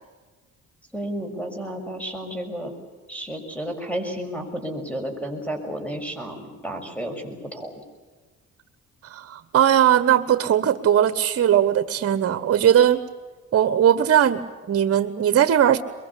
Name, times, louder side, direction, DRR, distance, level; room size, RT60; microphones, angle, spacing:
voice 1, 0.9-2.7 3.1-7.8, right 1 dB, 5° left, 6 dB, 6.3 m, -32 dB
voice 2, 9.1-13.0 13.5-15.8, right 10 dB, 50° right, 12 dB, 1.3 m, -19 dB
22.5 x 22.5 x 8.5 m, 1.4 s
cardioid pair, 90°, 30 cm